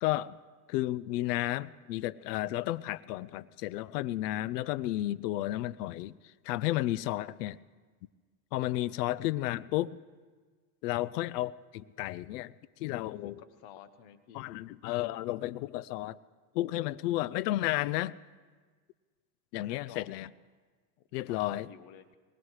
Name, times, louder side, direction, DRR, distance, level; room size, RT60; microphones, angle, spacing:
voice 1, 0.0-0.4 0.7-6.1 6.4-7.6 8.5-10.0 10.8-12.5 12.8-13.3 14.3-16.2 16.5-18.2 19.5-20.3 21.1-21.7, left 16 dB, 80° left, 20 dB, 0.6 m, -32 dB
voice 2, 13.0-13.3 13.6-14.5 19.5-20.1 21.3-22.1, left 10 dB, 60° left, 11 dB, 1.2 m, -52 dB
22.5 x 19.5 x 3.2 m, 1.5 s
supercardioid pair, 110°, 48 cm